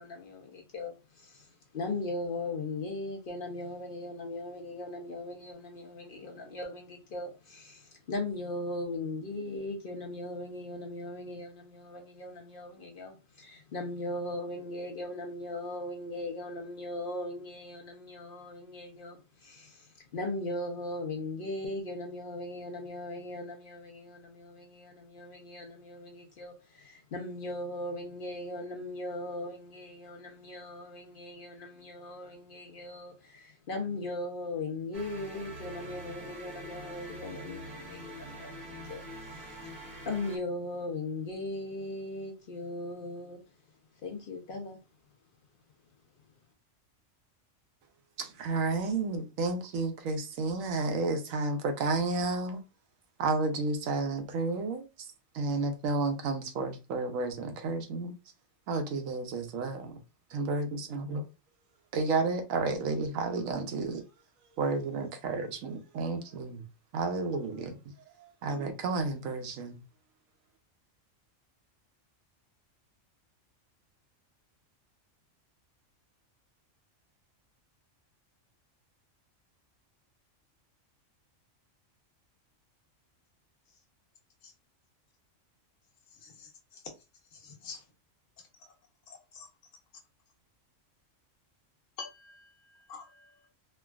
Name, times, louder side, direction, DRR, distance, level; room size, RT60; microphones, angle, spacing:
voice 1, 0.0-1.5 1.7-39.8 40.1-43.4 44.0-44.8, left 2 dB, 55° left, 0.6 m, -38 dB
sound 1, 34.9-40.4, right 1 dB, 45° right, 0.8 m, -44 dB
voice 2, 48.2-52.6 53.2-54.8 55.3-58.1 58.7-60.0 60.3-61.2 61.9-64.0 64.6-66.6 66.9-67.7 68.4-69.8, right 3 dB, 85° right, 1.1 m, -31 dB
voice 3, 86.1-86.8 87.3-87.8 88.6-88.7 89.1-89.5 92.0-93.5, left 5 dB, 75° left, 1.1 m, -48 dB
3.3 x 2.3 x 2.2 m
omnidirectional pair, 1.3 m